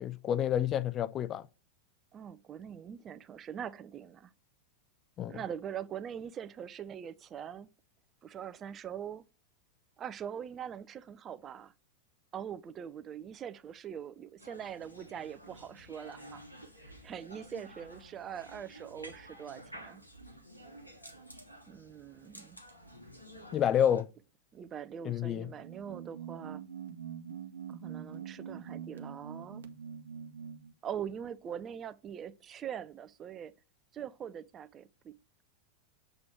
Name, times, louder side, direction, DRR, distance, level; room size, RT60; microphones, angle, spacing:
voice 1, 0.0-1.5 5.2-5.4 23.5-24.1 25.0-25.5, left 10 dB, 30° left, 0.5 m, -29 dB
voice 2, 2.1-4.3 5.3-7.7 8.2-9.3 10.0-11.7 12.3-16.4 16.8-20.0 21.7-22.6 24.5-26.6 27.7-29.6 30.8-33.5 33.9-35.1, right 8 dB, 25° right, 0.4 m, -42 dB
sound 1, 14.4-24.0, equal, 85° left, 1.2 m, -51 dB
sound 2, 25.6-30.7, right 8 dB, 65° right, 0.9 m, -44 dB
7.6 x 3.0 x 5.9 m
figure-of-eight pair, 90°, 0 cm